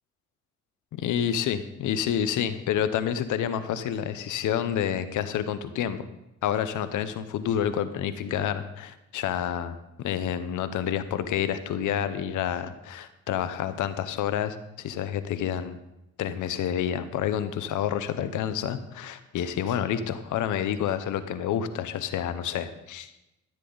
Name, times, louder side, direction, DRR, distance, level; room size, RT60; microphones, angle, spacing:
voice 1, 0.9-6.1 6.4-15.8 16.2-23.1, left 9 dB, 80° left, 12 dB, 0.9 m, -29 dB
13.5 x 9.8 x 4.0 m, 0.90 s
cardioid pair, 90°, 30 cm